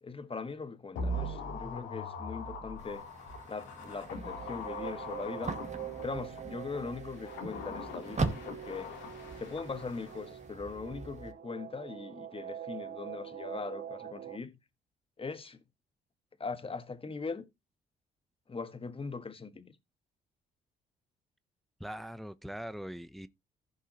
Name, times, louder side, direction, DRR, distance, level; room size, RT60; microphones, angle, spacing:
voice 1, 0.0-3.1 3.4-5.6 6.0-8.9 9.4-14.6 15.2-15.6 16.4-17.5 18.5-19.7, left 4 dB, 30° left, 1.5 m, -40 dB
sound 1, 1.0-6.4 7.0-10.3 10.6-10.7, left 1 dB, 85° left, 3.1 m, -41 dB
sound 2, 2.8-11.3, right 3 dB, 40° right, 2.2 m, -41 dB
sound 3, 3.7-14.4, right 10 dB, 60° right, 1.8 m, -45 dB
voice 2, 21.8-23.3, equal, ahead, 0.8 m, -41 dB
15.5 x 5.4 x 2.9 m
supercardioid pair, 60°, 19 cm